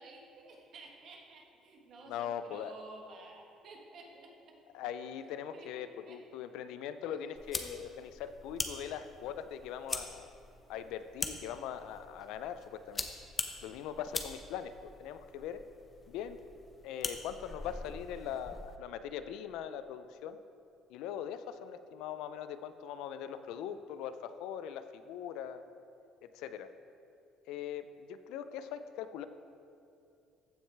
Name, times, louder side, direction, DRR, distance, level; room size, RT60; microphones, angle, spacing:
voice 1, 0.0-4.6 5.5-6.2 7.1-7.2 7.6-7.7, right 2 dB, 55° right, 0 dB, 1.5 m, -53 dB
voice 2, 2.1-2.7 4.7-10.3 10.7-13.1 13.6-14.7 15.0-15.6 16.1-16.4 16.8-20.4 20.9-25.6 26.2-26.7 27.5-29.2, left 9 dB, 80° left, 11 dB, 0.4 m, -41 dB
sound 1, 7.4-18.8, left 3 dB, 25° left, 0.7 m, -43 dB
14.5 x 6.3 x 3.4 m, 2.6 s
cardioid pair, 105°, 0 cm